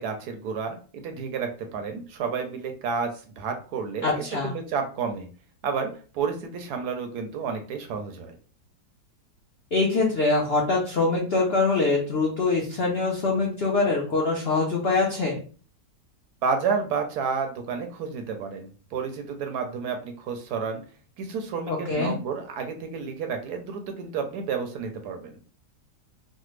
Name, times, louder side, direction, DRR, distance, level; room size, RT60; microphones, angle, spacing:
voice 1, 0.0-5.3 5.6-8.4 16.4-20.8 21.2-25.3, right 5 dB, 75° right, 5 dB, 1.0 m, -30 dB
voice 2, 4.0-4.5 9.7-15.4 21.7-22.1, left 3 dB, 70° left, -2 dB, 0.5 m, -24 dB
3.3 x 2.1 x 3.1 m, 0.38 s
omnidirectional pair, 1.9 m